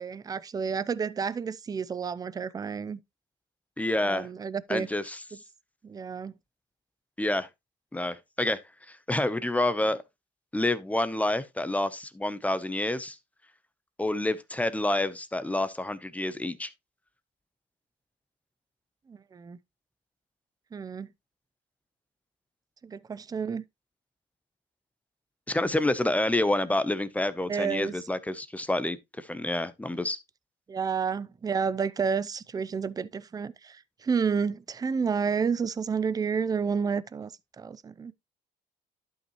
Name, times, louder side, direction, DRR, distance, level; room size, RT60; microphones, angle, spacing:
voice 1, 0.0-3.0 4.0-4.9 5.3-5.4 5.8-6.3 19.1-19.6 20.7-21.1 22.8-23.6 27.5-28.0 30.7-37.3 37.6-38.1, right 6 dB, 20° right, 0.5 m, -30 dB
voice 2, 3.8-4.3 4.7-5.2 7.2-7.5 7.9-8.6 8.9-10.0 10.5-13.2 14.0-16.7 25.5-30.2, left 1 dB, 10° left, 0.8 m, -28 dB
11.5 x 5.5 x 3.0 m
cardioid pair, 110°, 17 cm